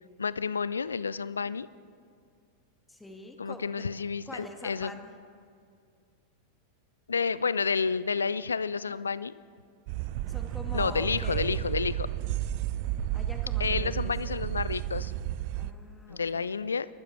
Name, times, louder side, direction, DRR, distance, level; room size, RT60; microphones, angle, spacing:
voice 1, 0.2-1.7 3.4-4.9 7.1-9.3 10.7-12.1 13.6-15.1 16.1-16.9, left 5 dB, 75° left, 18 dB, 0.3 m, -30 dB
voice 2, 2.9-3.9 4.3-5.1 10.3-11.5 13.1-14.4 15.5-16.6, left 1 dB, 10° left, 4 dB, 1.6 m, -44 dB
Freight Train Slow - Mixdown, 9.9-15.7, right 13 dB, 45° right, 0.4 m, -32 dB
25.0 x 12.5 x 3.2 m, 2.2 s
figure-of-eight pair, 90°, 0 cm